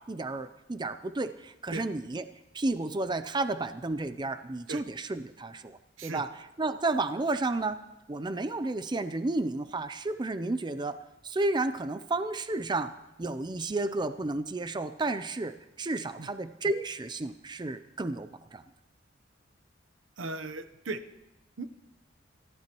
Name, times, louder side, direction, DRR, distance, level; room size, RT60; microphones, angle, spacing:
voice 1, 0.1-2.2 2.5-6.3 6.6-7.8 8.1-11.0 11.2-18.6, right 2 dB, 25° right, 11 dB, 0.5 m, -32 dB
voice 2, 20.2-21.0 21.6-21.7, right 3 dB, 85° right, 10 dB, 0.9 m, -37 dB
28.0 x 14.5 x 3.0 m, 0.96 s
head